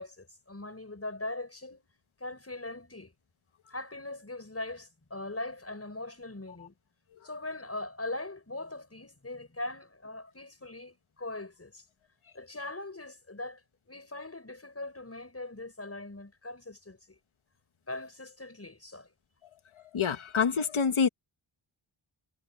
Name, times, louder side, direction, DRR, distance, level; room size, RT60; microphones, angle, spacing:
voice 1, 0.0-1.9 2.2-3.1 3.7-6.7 7.2-11.8 12.3-13.6 13.9-17.2 17.9-19.1, left 2 dB, 30° left, 6.2 m, -40 dB
voice 2, 19.9-21.1, left 6 dB, 85° left, 1.2 m, -26 dB
wide cardioid pair, 85°, 48 cm